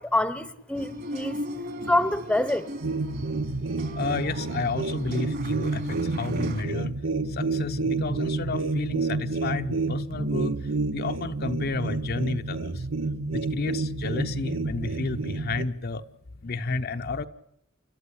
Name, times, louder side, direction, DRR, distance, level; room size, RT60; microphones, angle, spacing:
voice 1, 0.0-1.3 1.9-2.7, left 1 dB, 5° left, 14 dB, 0.9 m, -26 dB
sound 1, 0.7-6.6, equal, 50° right, 3.0 m, -37 dB
sound 2, 2.8-15.6, right 3 dB, 85° right, 1.3 m, -29 dB
voice 2, 4.0-6.9 7.3-10.5 10.9-12.9 13.3-16.0 16.4-17.3, left 3 dB, 50° left, 7 dB, 0.9 m, -31 dB
29.5 x 12.5 x 10.0 m, 0.75 s
head